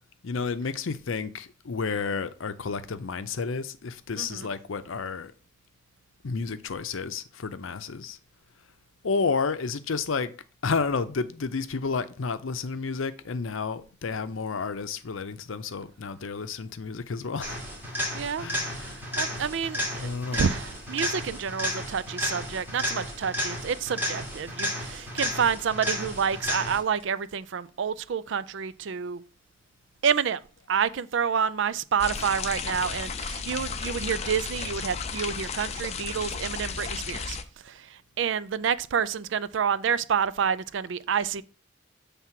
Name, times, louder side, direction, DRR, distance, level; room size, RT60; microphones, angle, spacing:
voice 1, 0.2-5.3 6.2-8.2 9.0-10.3 10.6-17.6 18.4-19.0 19.9-20.5, left 4 dB, 75° left, 0.6 m, -31 dB
voice 2, 4.2-4.5 18.1-29.2 30.0-30.4 30.7-37.4 37.6-41.4, right 7 dB, 60° right, 0.4 m, -29 dB
sound 1, 17.4-27.0 35.0-35.1, left 1 dB, 10° right, 2.4 m, -32 dB
sound 2, 32.0-37.4, left 5 dB, 30° left, 0.5 m, -34 dB
7.4 x 3.5 x 5.8 m
head